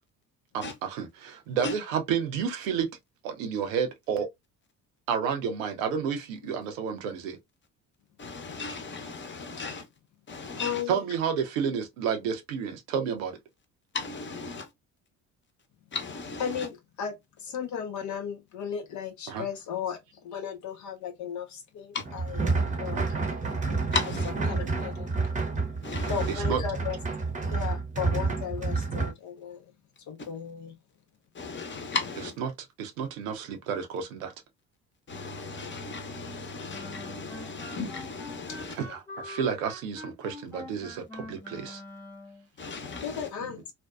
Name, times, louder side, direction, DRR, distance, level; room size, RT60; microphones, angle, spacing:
voice 1, 0.5-2.9 3.2-4.3 5.1-7.4 10.9-13.4 19.3-19.4 22.9-23.1 26.5-26.6 32.4-32.5 32.8-34.3 38.7-41.8, right 7 dB, 85° right, 0.6 m, -30 dB
voice 2, 8.2-9.9 10.3-10.8 13.9-14.7 15.9-16.7 21.9-22.0 23.9-24.3 25.8-26.3 30.2-30.3 31.3-32.4 35.1-38.8 42.6-43.3, left 4 dB, 30° left, 0.8 m, -36 dB
voice 3, 10.6-11.0 16.4-23.2 24.5-25.1 26.1-27.0 27.4-29.6 30.1-30.7 38.8-38.9 43.0-43.6, left 8 dB, 50° left, 0.5 m, -35 dB
sound 1, 22.0-29.1, right 3 dB, 20° right, 0.8 m, -29 dB
Wind instrument woodwind instrument, 36.7-42.4, left 2 dB, 5° left, 1.2 m, -44 dB
2.5 x 2.2 x 2.3 m
hypercardioid pair, 55°, 39 cm